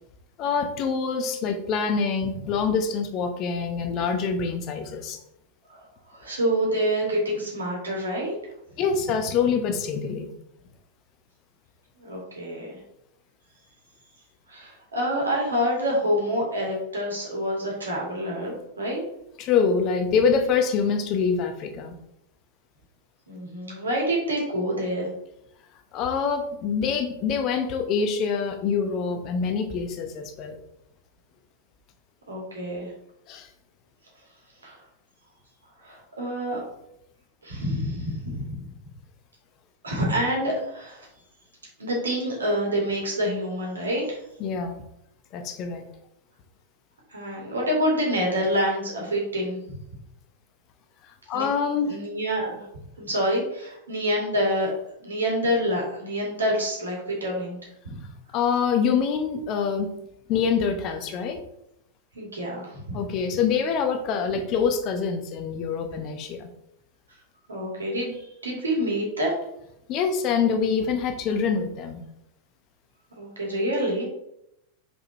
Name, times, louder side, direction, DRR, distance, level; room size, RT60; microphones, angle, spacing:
voice 1, 0.4-5.2 8.8-10.3 19.4-22.0 25.9-30.5 33.3-33.5 44.4-44.8 45.3-45.8 51.3-52.0 58.3-59.9 60.3-61.4 62.9-66.5 69.9-72.0, left 6 dB, 40° left, 6 dB, 0.9 m, -25 dB
voice 2, 6.1-8.3 12.0-12.8 14.5-19.0 23.3-25.1 32.3-32.9 34.6-34.8 35.8-36.6 37.4-38.4 39.8-41.1 41.8-44.2 47.1-49.8 51.3-51.4 51.9-52.7 53.0-54.7 55.0-57.6 62.1-62.8 67.5-69.3 73.2-74.0, equal, 75° right, -2 dB, 2.4 m, -27 dB
5.2 x 4.7 x 4.1 m, 0.80 s
figure-of-eight pair, 90°, 0 cm